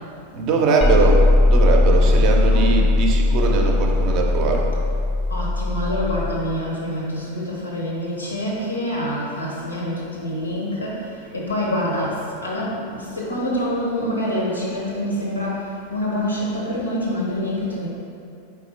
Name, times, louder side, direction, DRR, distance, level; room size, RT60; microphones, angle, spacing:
voice 1, 0.3-4.7, right 4 dB, 40° right, 1 dB, 0.5 m, -21 dB
sound 1, 0.8-6.3, left 2 dB, 20° left, 0.3 m, -18 dB
voice 2, 1.9-2.9 5.3-17.9, equal, 80° left, -4 dB, 0.9 m, -26 dB
4.3 x 3.4 x 3.2 m, 2.5 s
figure-of-eight pair, 90°, 0 cm